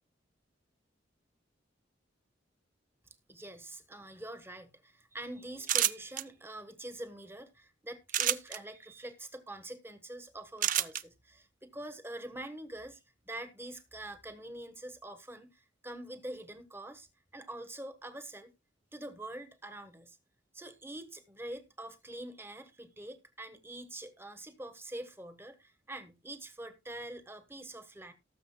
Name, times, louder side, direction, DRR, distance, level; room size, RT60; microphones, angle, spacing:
voice 1, 3.3-17.1 17.3-18.5 18.9-20.2 20.5-28.1, right 1 dB, 10° right, 1.2 m, -45 dB
sound 1, 5.6-6.2 8.1-8.6 10.6-11.0, right 12 dB, 45° right, 0.4 m, -28 dB
19.0 x 6.9 x 2.2 m
head